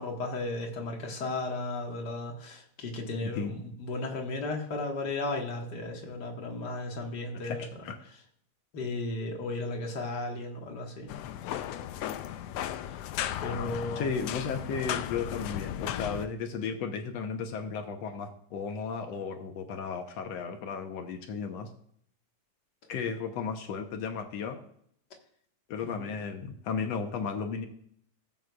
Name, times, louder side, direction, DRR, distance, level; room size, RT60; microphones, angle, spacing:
voice 1, 0.0-7.7 8.7-11.1 13.4-14.2 25.9-26.1, left 2 dB, 40° left, 1 dB, 1.8 m, -35 dB
voice 2, 7.4-8.0 14.0-21.7 22.9-24.6 25.7-27.7, left 5 dB, 70° left, 5 dB, 2.0 m, -34 dB
sound 1, 11.1-16.3, left 11 dB, 85° left, 1.4 m, -35 dB
17.0 x 8.1 x 2.4 m, 0.66 s
omnidirectional pair, 3.3 m